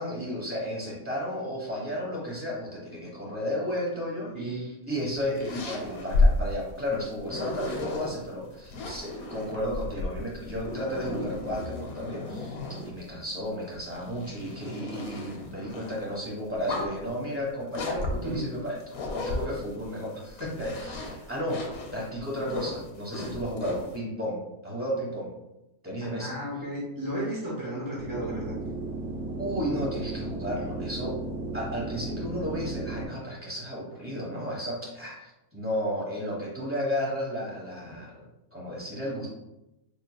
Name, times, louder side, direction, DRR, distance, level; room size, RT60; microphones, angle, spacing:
voice 1, 0.0-12.6 12.9-18.8 19.1-21.6 21.9-25.3 25.8-26.3 29.4-31.2 31.5-38.2 38.5-39.3, equal, 10° right, -6 dB, 1.1 m, -33 dB
voice 2, 4.3-4.7 18.2-18.5 26.0-28.6, right 1 dB, 30° right, -5 dB, 0.3 m, -33 dB
sound 1, 5.0-8.1 8.7-13.1 13.7-16.0 16.5-17.1 17.7-19.9 20.3-23.9, left 2 dB, 85° left, 1.2 m, -32 dB
sound 2, 28.0-33.1, right 2 dB, 70° right, 1.1 m, -35 dB
4.2 x 3.3 x 2.3 m, 0.94 s
omnidirectional pair, 1.5 m